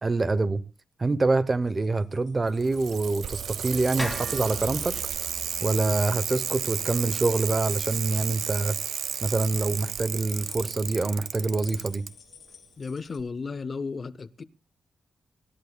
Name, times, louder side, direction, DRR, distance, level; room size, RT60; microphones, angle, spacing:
voice 1, 0.0-0.6 1.0-4.9 5.6-8.8 9.2-12.1, right 3 dB, 25° right, 0.7 m, -26 dB
sound 1, 1.5-13.2, left 7 dB, 55° left, 5.0 m, -56 dB
Bicycle, 2.5-12.1 13.2-13.3, right 8 dB, 80° right, 0.6 m, -32 dB
sound 2, 4.0-8.1, left 1 dB, 10° left, 2.1 m, -41 dB
voice 2, 12.8-14.4, left 4 dB, 35° left, 0.6 m, -34 dB
25.0 x 13.0 x 2.2 m
wide cardioid pair, 160°, 0 cm